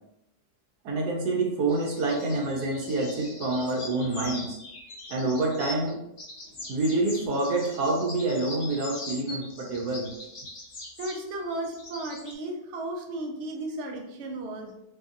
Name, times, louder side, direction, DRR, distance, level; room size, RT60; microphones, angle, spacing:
voice 1, 0.8-4.6 5.1-6.0 6.7-10.1, right 2 dB, 85° right, 1 dB, 1.2 m, -27 dB
sound 1, 1.7-5.9 6.2-12.3, left 2 dB, 45° left, 0.6 m, -42 dB
voice 2, 6.5-6.8 11.0-14.7, right 1 dB, 65° right, 1 dB, 0.7 m, -35 dB
3.0 x 2.6 x 2.4 m, 0.83 s
omnidirectional pair, 1.7 m